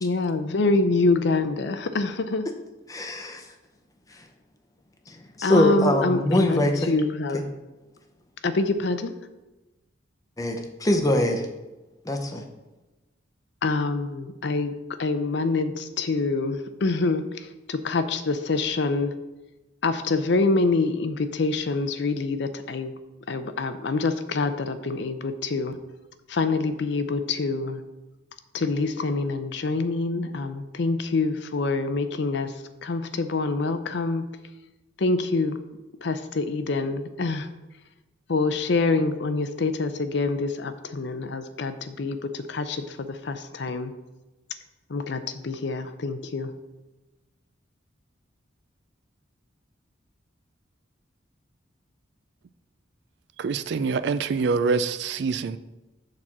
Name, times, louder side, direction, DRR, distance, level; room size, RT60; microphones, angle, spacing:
voice 1, 0.0-2.5 5.4-7.5 8.4-9.2 13.6-19.1 19.8-22.9 23.3-25.8 26.3-27.8 28.5-34.2 35.0-35.6 36.0-37.5 38.3-43.9 44.9-46.5, left 3 dB, 60° left, 10 dB, 0.5 m, -26 dB
voice 2, 2.9-3.4 5.1-6.9 10.4-11.5 12.1-12.4, left 1 dB, 20° left, 4 dB, 0.7 m, -23 dB
voice 3, 53.4-55.6, right 4 dB, 60° right, 13 dB, 0.3 m, -25 dB
6.5 x 4.3 x 6.0 m, 1.1 s
head